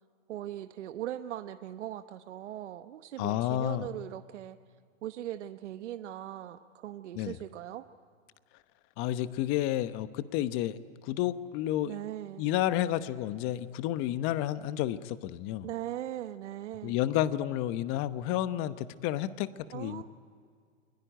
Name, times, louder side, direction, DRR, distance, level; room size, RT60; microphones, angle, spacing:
voice 1, 0.3-4.6 5.0-7.9 11.8-12.4 15.6-17.0 19.7-20.0, right 12 dB, 65° right, 10 dB, 1.0 m, -39 dB
voice 2, 3.2-3.9 7.1-7.4 9.0-10.8 11.0-11.9 12.4-15.7 16.8-20.0, left 13 dB, 35° left, 14 dB, 1.0 m, -31 dB
29.0 x 21.5 x 9.2 m, 2.1 s
hypercardioid pair, 130°, 38 cm